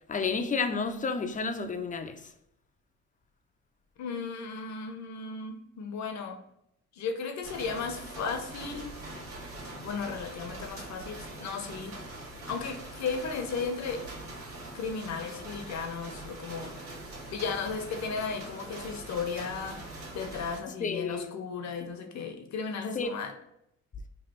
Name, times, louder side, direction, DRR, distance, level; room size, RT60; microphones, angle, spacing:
voice 1, 0.1-2.2 20.8-21.3 22.9-23.1, left 4 dB, 25° left, 0.4 m, -31 dB
voice 2, 4.0-6.4 6.9-8.9 9.8-11.9 12.5-14.0 14.7-16.8 17.3-19.8 20.1-23.3, left 5 dB, 65° left, 0.8 m, -35 dB
sound 1, 7.4-20.6, right 2 dB, 45° right, 1.2 m, -43 dB
3.2 x 2.4 x 4.3 m
cardioid pair, 90°, 30 cm